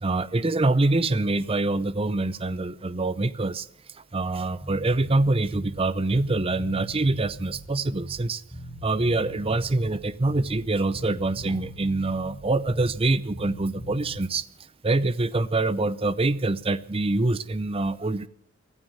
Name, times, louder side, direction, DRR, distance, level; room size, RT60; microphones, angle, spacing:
voice 1, 0.0-3.7 4.1-8.4 8.8-14.4 14.8-18.3, right 2 dB, 25° right, 16 dB, 0.6 m, -25 dB
Bass guitar, 4.6-5.9 6.1-8.3 8.5-10.7 10.9-13.1 13.3-14.2, right 1 dB, ahead, 5.3 m, -39 dB
15.0 x 13.5 x 7.2 m, 0.79 s
head